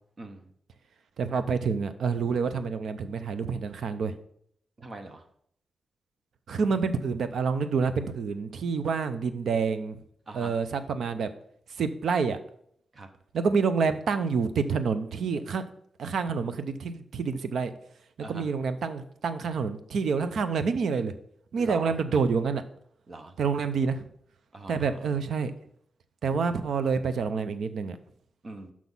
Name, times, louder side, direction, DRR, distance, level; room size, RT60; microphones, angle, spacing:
voice 1, 0.2-0.5 4.8-5.2 10.3-10.5 12.9-13.1 18.2-18.5 21.6-21.9 23.1-23.3 24.5-24.9 28.4-28.7, right 2 dB, 35° right, 6 dB, 0.7 m, -42 dB
voice 2, 1.2-4.2 6.5-10.0 10.3-11.3 11.7-12.4 13.3-15.6 16.0-17.7 18.2-21.1 21.5-22.6 23.4-24.0 24.7-25.5 26.2-28.0, right 5 dB, 85° right, 11 dB, 0.6 m, -28 dB
6.1 x 6.0 x 5.4 m, 0.68 s
wide cardioid pair, 170°, 0 cm